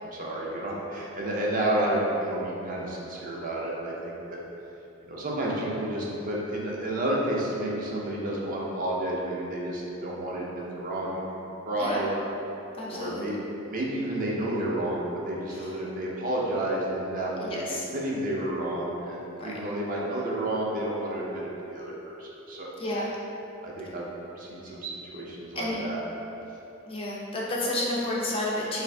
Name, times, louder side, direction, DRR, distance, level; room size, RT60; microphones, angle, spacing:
voice 1, 0.0-4.4 5.1-12.1 12.9-13.3 13.7-21.9 22.2-22.7 23.6-24.1 24.4-26.0, right 1 dB, 40° right, -4 dB, 0.4 m, -31 dB
voice 2, 12.8-13.3 15.5-15.7 17.4-17.9 19.4-19.5 22.8-23.1 25.6-25.8 26.9-28.8, left 1 dB, 25° left, -4 dB, 0.4 m, -31 dB
2.6 x 2.5 x 3.2 m, 2.9 s
head